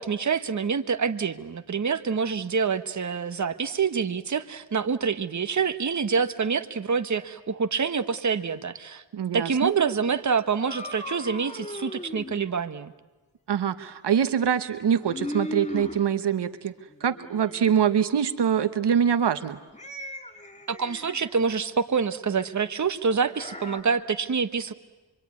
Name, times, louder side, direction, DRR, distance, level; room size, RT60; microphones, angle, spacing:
voice 1, 0.0-9.0 9.3-12.9 20.7-24.7, right 5 dB, 40° right, 10 dB, 1.2 m, -26 dB
voice 2, 9.1-9.7 13.5-16.7 17.0-19.6, right 8 dB, 70° right, 12 dB, 1.1 m, -24 dB
sound 1, 10.5-12.4 14.9-16.0 16.9-17.8 19.7-21.3 23.3-23.8, left 1 dB, 15° left, 2.7 m, -37 dB
25.5 x 24.5 x 9.6 m, 1.2 s
cardioid pair, 80°, 42 cm